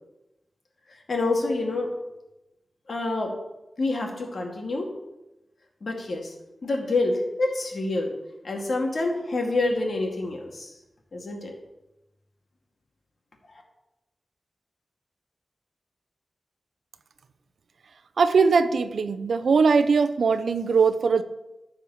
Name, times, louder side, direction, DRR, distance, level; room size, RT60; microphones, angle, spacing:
voice 1, 1.1-1.9 2.9-3.3 3.8-4.9 5.8-6.3 6.6-8.1 8.4-10.7 11.1-11.5 13.5-13.6, left 2 dB, 65° left, 1 dB, 2.2 m, -27 dB
voice 2, 18.2-21.2, right 5 dB, 80° right, 11 dB, 0.6 m, -20 dB
10.0 x 4.7 x 7.1 m, 0.97 s
cardioid pair, 40°, 0 cm